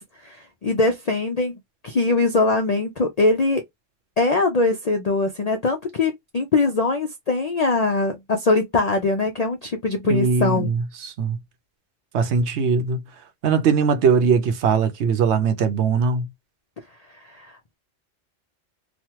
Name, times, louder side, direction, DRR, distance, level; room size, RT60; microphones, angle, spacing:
voice 1, 0.0-1.6 1.8-3.6 4.2-10.7 17.1-17.8, left 3 dB, 55° left, 0.4 m, -22 dB
voice 2, 10.0-11.4 12.1-13.0 13.4-16.3, right 5 dB, 70° right, 0.9 m, -20 dB
3.1 x 2.2 x 2.8 m
omnidirectional pair, 1.3 m